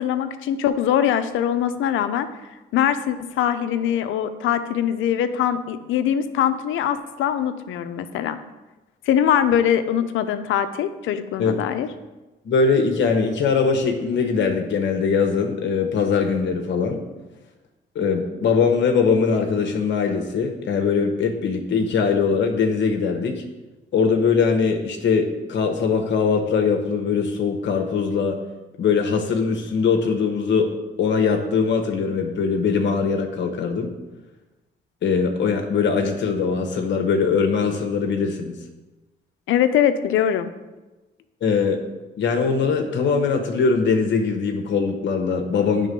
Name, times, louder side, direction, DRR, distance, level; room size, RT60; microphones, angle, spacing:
voice 1, 0.0-2.3 2.7-8.4 9.1-11.9 39.5-40.5, left 9 dB, 85° left, 10 dB, 0.6 m, -22 dB
voice 2, 12.4-17.0 17.9-23.4 23.9-28.4 28.8-30.7 31.0-33.9 35.0-38.5 41.4-41.8 42.2-45.9, left 5 dB, 65° left, 3 dB, 1.1 m, -21 dB
9.9 x 3.7 x 5.3 m, 1.1 s
cardioid pair, 90°, 20 cm